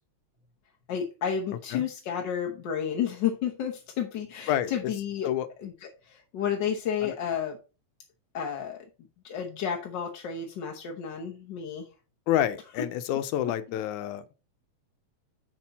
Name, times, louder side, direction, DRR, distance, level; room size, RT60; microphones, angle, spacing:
voice 1, 0.9-5.3 5.6-7.6 8.3-8.9 9.2-11.9 13.7-13.8, left 8 dB, 65° left, 1.1 m, -31 dB
voice 2, 12.3-14.2, left 11 dB, 90° left, 2.1 m, -28 dB
6.8 x 6.0 x 4.1 m
omnidirectional pair, 3.3 m